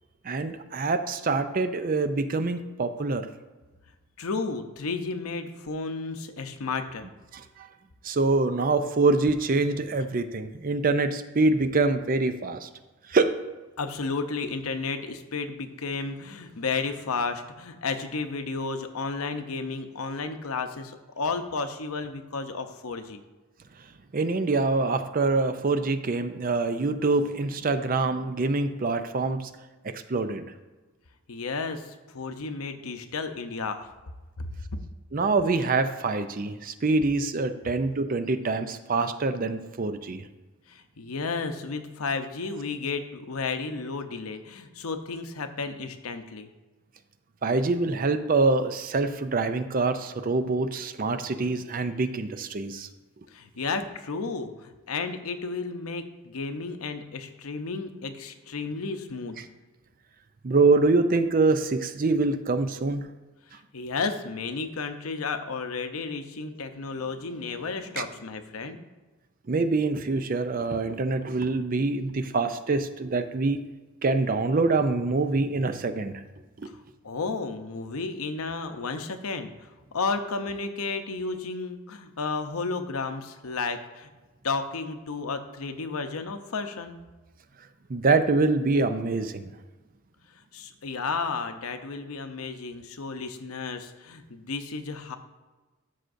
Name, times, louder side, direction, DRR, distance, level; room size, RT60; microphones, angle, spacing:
voice 1, 0.2-3.3 7.3-7.7 8.0-12.7 13.1-13.4 24.1-29.5 29.8-30.4 35.1-40.2 47.4-52.9 60.4-63.1 68.0-68.1 69.5-73.7 74.0-76.1 87.9-89.5, right 3 dB, 40° right, 10 dB, 0.5 m, -25 dB
voice 2, 4.2-7.1 13.8-23.2 31.3-33.9 34.4-34.5 40.7-46.5 53.3-59.4 63.7-68.8 77.0-84.1 84.4-87.0 90.5-95.2, left 4 dB, 85° left, 8 dB, 0.7 m, -32 dB
12.5 x 6.4 x 2.6 m, 1.2 s
head